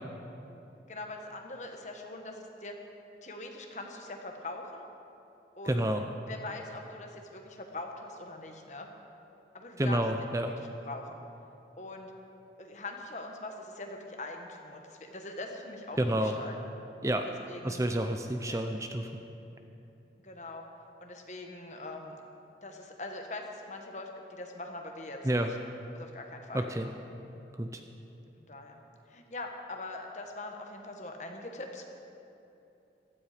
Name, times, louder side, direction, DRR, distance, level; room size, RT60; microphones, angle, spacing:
voice 1, 0.9-2.8 3.2-4.9 5.6-5.9 6.3-8.9 9.5-10.0 10.4-11.2 11.8-12.1 12.6-16.6 17.2-17.8 18.5-18.6 20.2-20.6 21.0-22.2 22.6-25.6 25.9-26.7 28.2-28.8 29.1-31.9, left 2 dB, 40° left, 3 dB, 1.4 m, -42 dB
voice 2, 5.7-6.0 9.8-10.5 16.0-16.3 17.0-17.2 17.6-19.1 25.2-25.5 26.5-26.9 27.6-27.7, right 1 dB, 15° right, 5 dB, 0.6 m, -29 dB
16.0 x 13.0 x 5.1 m, 2.8 s
head